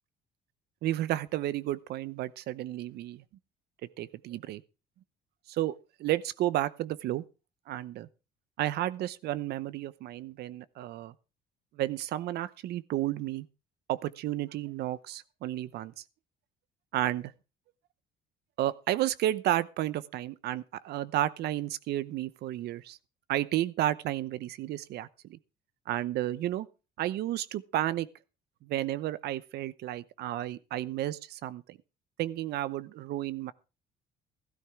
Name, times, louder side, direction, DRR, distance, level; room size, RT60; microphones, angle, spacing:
voice 1, 0.8-3.2 4.0-4.6 5.5-7.2 7.7-8.1 8.6-11.1 11.8-13.5 13.9-15.9 16.9-17.3 18.6-23.0 23.3-25.4 25.9-26.7 27.0-28.1 28.6-31.8 32.2-33.5, right 14 dB, 75° right, 0.8 m, -32 dB
15.0 x 13.0 x 3.6 m
cardioid pair, 110°, 17 cm